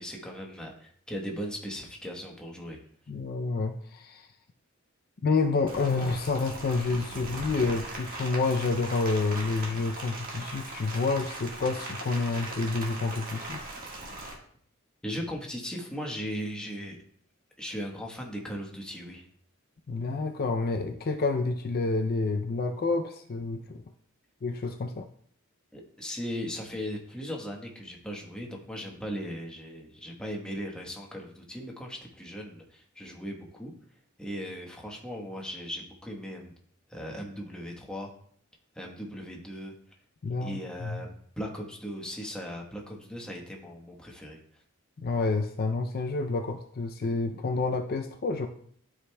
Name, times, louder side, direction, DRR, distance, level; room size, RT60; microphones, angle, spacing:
voice 1, 0.0-2.8 15.0-17.0 17.6-19.3 25.7-33.7 34.2-36.5 36.9-38.1 38.7-39.7 40.4-41.1 41.4-44.4, equal, 5° left, -1 dB, 1.1 m, -38 dB
voice 2, 3.1-4.3 5.2-13.6 19.9-23.8 24.4-25.1 40.2-41.0 45.0-48.5, left 3 dB, 45° left, 5 dB, 0.5 m, -29 dB
Rain, 5.7-14.3, right 2 dB, 45° right, 1.6 m, -39 dB
12.5 x 5.0 x 2.2 m, 0.62 s
head